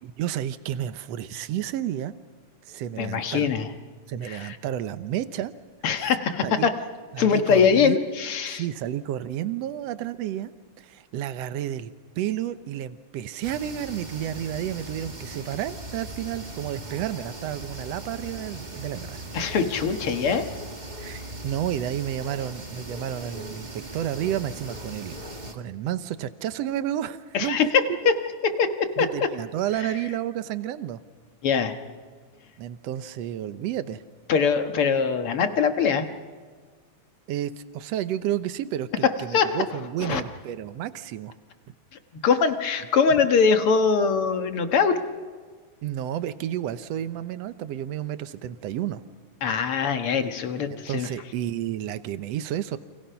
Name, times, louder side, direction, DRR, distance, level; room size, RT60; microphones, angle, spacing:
voice 1, 0.0-2.1 2.6-3.5 4.1-5.5 6.0-6.1 6.4-6.7 7.1-8.0 8.4-10.5 10.8-19.2 21.0-25.2 25.5-27.8 28.0-28.1 29.0-31.0 32.6-34.0 37.3-41.3 45.8-49.0 50.7-52.8, right 11 dB, 75° right, 12 dB, 1.5 m, -31 dB
voice 2, 3.0-3.7 4.2-4.6 5.8-6.7 7.2-8.6 19.3-20.4 27.3-28.1 28.4-29.1 31.4-31.7 34.3-36.1 39.3-39.6 40.0-40.2 42.2-44.9 49.4-51.1, left 6 dB, 50° left, 7 dB, 1.8 m, -22 dB
sound 1, 13.4-25.5, right 1 dB, 20° right, 1.1 m, -39 dB
30.0 x 27.0 x 5.8 m, 1.5 s
omnidirectional pair, 4.0 m